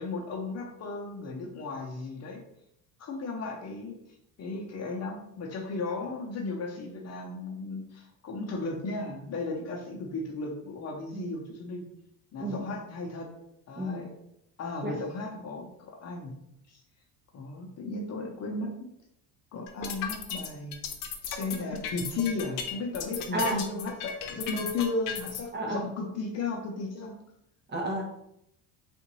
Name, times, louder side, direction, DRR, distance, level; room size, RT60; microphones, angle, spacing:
voice 1, 0.0-2.4 3.0-4.0 4.4-11.8 12.3-13.3 13.7-14.1 14.6-16.3 16.7-16.8 17.3-18.7 19.5-20.8 21.2-27.2, left 3 dB, 40° left, 0 dB, 0.7 m, -35 dB
sound 1, 19.7-25.4, left 7 dB, 90° left, 0.6 m, -35 dB
voice 2, 23.3-23.6 25.5-25.9 27.7-28.0, right 1 dB, 25° right, -1 dB, 0.8 m, -31 dB
3.7 x 2.6 x 3.0 m, 0.77 s
cardioid pair, 125°, 38 cm